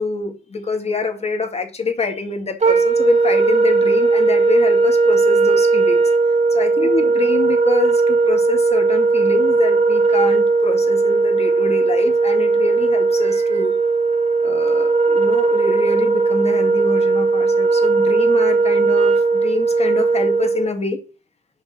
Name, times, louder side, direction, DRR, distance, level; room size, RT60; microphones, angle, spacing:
voice 1, 0.0-13.8 14.4-21.0, left 3 dB, 30° left, 5 dB, 2.0 m, -25 dB
Wind instrument woodwind instrument, 2.6-20.7, right 4 dB, 35° right, 1.9 m, -17 dB
6.7 x 5.5 x 6.2 m, 0.34 s
cardioid pair, 90°, 20 cm